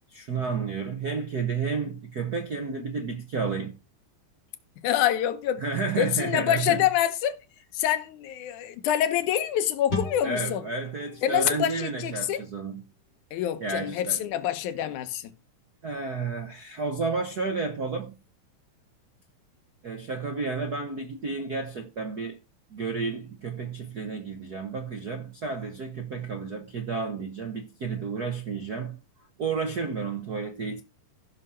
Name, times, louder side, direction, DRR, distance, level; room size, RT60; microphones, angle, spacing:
voice 1, 0.1-3.7 5.6-6.8 10.2-12.8 13.6-14.2 15.8-18.1 19.8-22.4 22.7-29.0 29.4-30.8, right 4 dB, 65° right, 0.9 m, -31 dB
voice 2, 4.8-5.6 6.0-7.4 7.7-10.6 11.2-12.4 13.3-15.3, left 11 dB, 90° left, 2.4 m, -26 dB
sound 1, 9.9-13.3, left 3 dB, 20° left, 3.7 m, -38 dB
15.5 x 6.3 x 4.3 m
omnidirectional pair, 3.4 m